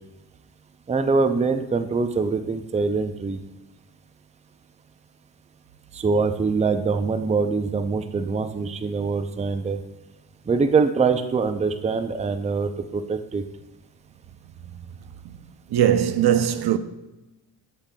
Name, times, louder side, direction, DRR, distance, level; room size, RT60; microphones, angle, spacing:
voice 1, 0.9-3.4 5.9-9.8 10.5-13.4, right 4 dB, 15° right, 0.5 m, -23 dB
voice 2, 15.7-16.8, right 10 dB, 65° right, 0.6 m, -20 dB
8.5 x 7.4 x 2.3 m
cardioid pair, 75°, 42 cm